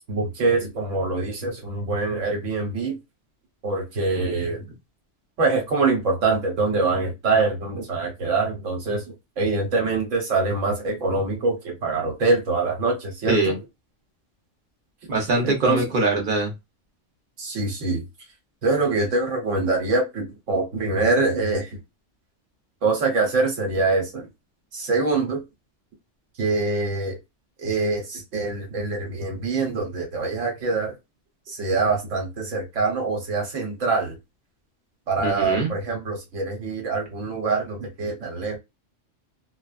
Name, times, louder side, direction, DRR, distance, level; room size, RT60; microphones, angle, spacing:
voice 1, 0.1-3.0 3.6-4.6 5.4-9.0 9.4-13.6 15.4-15.8 17.4-18.0 18.6-21.8 22.8-24.3 24.7-25.4 26.4-27.2 27.6-30.9 31.5-34.1 35.1-38.6, right 3 dB, 90° right, 1.3 m, -24 dB
voice 2, 15.1-16.5 35.2-35.7, right 2 dB, 45° right, 0.9 m, -22 dB
2.4 x 2.2 x 2.3 m
omnidirectional pair, 1.3 m